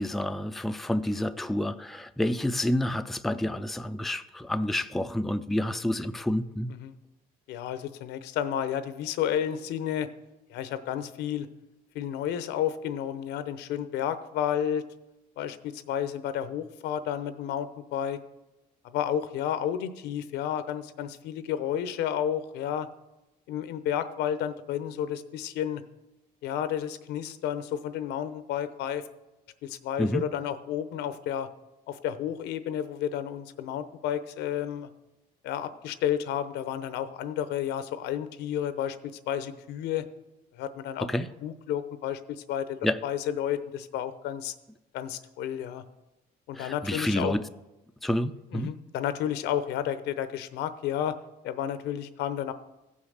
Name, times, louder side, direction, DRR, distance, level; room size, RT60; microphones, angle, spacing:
voice 1, 0.0-6.7 30.0-30.2 41.0-41.3 42.8-43.0 46.5-47.4 48.0-48.7, left 1 dB, ahead, 9 dB, 0.4 m, -29 dB
voice 2, 7.5-10.1 10.5-11.5 11.9-14.8 15.4-18.2 18.8-22.9 23.5-25.8 26.4-29.1 29.6-31.5 31.9-34.9 35.4-39.0 39.3-40.1 40.5-41.1 41.4-44.5 44.9-45.8 46.5-47.3 48.5-51.2 51.4-52.5, left 10 dB, 85° left, 12 dB, 0.8 m, -31 dB
15.0 x 5.6 x 6.4 m, 1.0 s
cardioid pair, 110°, 17 cm